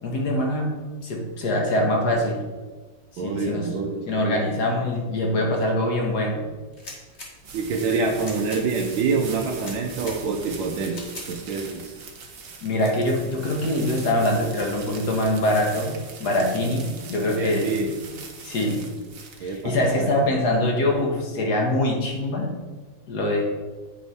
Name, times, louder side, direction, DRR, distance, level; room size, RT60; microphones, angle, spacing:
voice 1, 0.0-0.7 1.0-2.4 3.2-3.7 4.1-6.5 12.6-17.7 18.4-18.9 19.4-22.5 23.1-23.4, left 1 dB, 55° left, 1 dB, 1.7 m, -24 dB
voice 2, 3.2-4.5 7.5-11.0 11.3-12.0 17.2-17.9 19.4-20.3, right 4 dB, 75° right, 0 dB, 1.5 m, -26 dB
sound 1, 6.6-21.1, right 4 dB, 50° right, 1.1 m, -42 dB
sound 2, 6.7-7.3 8.1-8.6 9.5-10.2 10.9-11.3, left 2 dB, 35° left, 1.8 m, -40 dB
9.4 x 4.9 x 4.1 m, 1.3 s
omnidirectional pair, 2.3 m